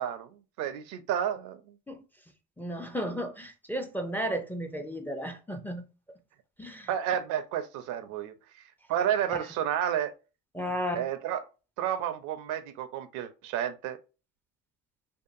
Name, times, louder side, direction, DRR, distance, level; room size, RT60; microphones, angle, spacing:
voice 1, 0.0-1.8 6.9-8.3 8.9-10.1 10.9-11.4 11.8-14.0, right 10 dB, 75° right, 0.5 m, -31 dB
voice 2, 2.6-5.8 6.6-6.9 9.3-9.4 10.5-11.1, equal, 5° left, 0.4 m, -34 dB
2.7 x 2.5 x 2.4 m
supercardioid pair, 85°, 30 cm